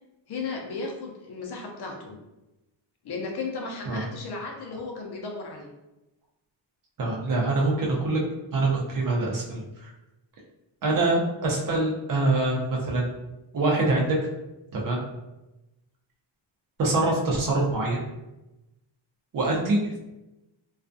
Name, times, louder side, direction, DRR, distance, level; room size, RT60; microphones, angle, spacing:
voice 1, 0.3-2.2 3.0-5.7, left 4 dB, 55° left, 0 dB, 0.6 m, -35 dB
voice 2, 7.0-8.2 8.5-9.9 10.8-13.1 13.5-14.2 14.8-15.0 16.8-18.0 19.3-20.0, right 2 dB, 45° right, -2 dB, 0.6 m, -24 dB
2.4 x 2.2 x 2.5 m, 0.98 s
cardioid pair, 115°, 48 cm